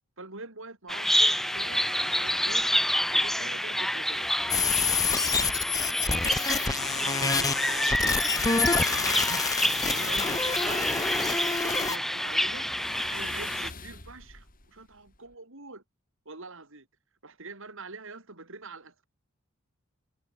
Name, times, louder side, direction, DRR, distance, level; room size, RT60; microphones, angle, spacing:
voice 1, 0.2-1.9 2.2-2.7 3.1-9.4 9.9-12.7 13.0-15.8 16.2-16.9 17.2-19.0, right 3 dB, 65° right, 4.5 m, -45 dB
Bird vocalization bird call bird song, 0.9-13.7, equal, ahead, 1.3 m, -28 dB
sound 1, 1.5-15.3, left 3 dB, 45° left, 7.3 m, -47 dB
sound 2, 4.5-12.0, left 4 dB, 15° left, 0.9 m, -28 dB
head